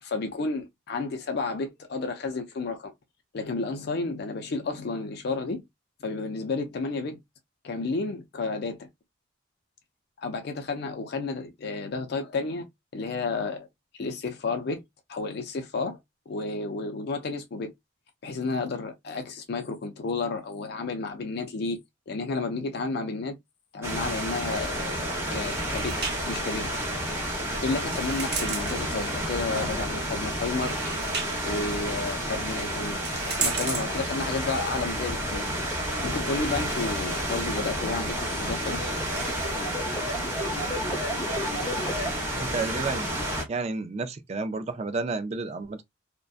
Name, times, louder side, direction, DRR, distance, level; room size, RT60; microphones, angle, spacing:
voice 1, 0.0-2.9 3.3-5.6 6.0-7.2 7.6-8.9 10.2-12.7 12.9-13.7 13.9-14.8 15.1-16.0 16.3-17.7 18.2-21.8 22.1-23.4 23.7-26.0 26.3-26.7 27.6-30.8 31.4-35.5 36.0-38.9, left 3 dB, 55° left, 0.4 m, -31 dB
sound 1, 23.8-43.4, equal, 15° right, 1.0 m, -30 dB
sound 2, 24.6-39.6, right 4 dB, 55° right, 1.0 m, -38 dB
sound 3, 35.2-42.1, equal, 20° left, 0.8 m, -36 dB
voice 2, 42.3-43.1 43.5-45.8, right 3 dB, 35° right, 0.3 m, -31 dB
2.6 x 2.2 x 2.3 m
head